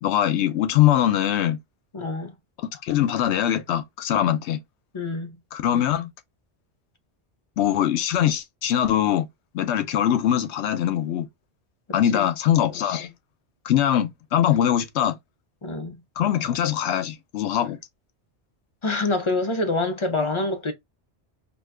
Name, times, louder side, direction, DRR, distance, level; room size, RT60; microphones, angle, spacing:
voice 1, 0.0-1.6 2.6-4.6 5.5-6.1 7.6-9.3 9.5-11.3 11.9-13.1 13.6-15.2 16.2-17.8, left 11 dB, 85° left, 0.9 m, -22 dB
voice 2, 1.9-2.3 4.9-5.3 12.1-12.3 15.6-16.0 18.8-20.7, left 2 dB, 45° left, 0.4 m, -26 dB
2.6 x 2.2 x 3.5 m
omnidirectional pair, 1.1 m